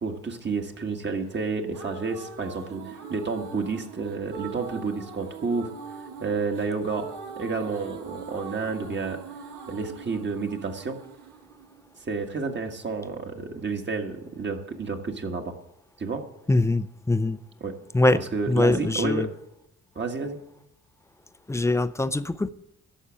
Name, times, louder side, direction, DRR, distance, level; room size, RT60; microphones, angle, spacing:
voice 1, 0.0-5.7 6.2-9.2 9.7-11.0 12.1-15.5 16.0-16.2 17.6-17.7 18.1-19.3 20.0-20.4, right 4 dB, 35° right, 4 dB, 1.8 m, -30 dB
sound 1, 1.4-12.4, right 5 dB, 80° right, 1.9 m, -42 dB
voice 2, 16.5-17.4 17.9-18.2 18.5-19.3 21.5-22.5, left 2 dB, 10° left, 13 dB, 0.5 m, -23 dB
11.5 x 6.9 x 8.8 m, 0.82 s
cardioid pair, 90°, 30 cm